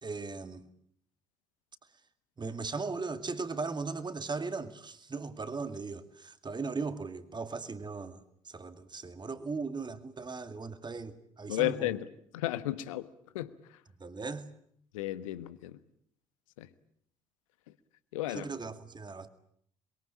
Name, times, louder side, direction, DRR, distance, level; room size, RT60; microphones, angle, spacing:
voice 1, 0.0-0.7 2.4-8.2 8.4-11.9 14.0-14.5 18.3-19.3, right 4 dB, 25° right, 2.3 m, -38 dB
voice 2, 11.5-12.1 12.3-13.1 13.3-13.5 14.9-15.8 16.6-16.7 18.1-18.5, left 15 dB, 75° left, 1.1 m, -33 dB
27.5 x 22.5 x 8.6 m
figure-of-eight pair, 50°, 17 cm